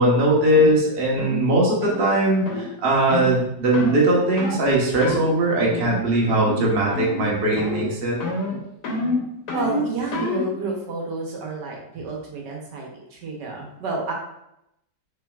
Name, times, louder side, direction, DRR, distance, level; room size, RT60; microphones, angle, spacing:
voice 1, 0.0-8.2, right 1 dB, 40° right, -3 dB, 1.1 m, -20 dB
sound 1, 0.5-0.7 1.2-1.4 1.8-2.0 2.5-2.7 3.1-3.3 3.7-4.0 4.4-4.6 5.0-5.3 5.6-6.0 6.3-6.7 6.9-7.3 7.6-7.9 8.2-10.5, left 2 dB, 70° left, 1.6 m, -27 dB
voice 2, 9.5-14.1, right 4 dB, 75° right, -1 dB, 1.5 m, -30 dB
6.5 x 3.3 x 2.3 m, 0.83 s
omnidirectional pair, 1.9 m